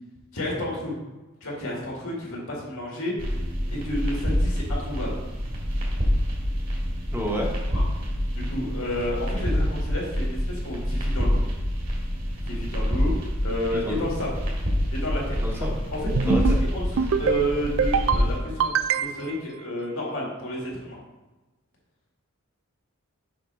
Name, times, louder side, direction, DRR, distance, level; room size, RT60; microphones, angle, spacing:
voice 1, 0.3-1.0 1.4-3.3 3.7-5.1 7.7-7.8 8.3-11.4 12.4-14.3 14.9-21.0, equal, 75° left, -3 dB, 2.3 m, -31 dB
sound 1, 3.2-18.4, equal, 40° right, 1.8 m, -27 dB
voice 2, 7.1-7.5 13.7-14.1 15.4-15.8 16.2-16.6, left 1 dB, 10° right, -1 dB, 1.1 m, -29 dB
sound 2, 16.2-16.6 17.0-17.4 17.8-18.2 18.6-19.4, right 6 dB, 65° right, 0.4 m, -24 dB
7.2 x 5.8 x 3.5 m, 1.1 s
head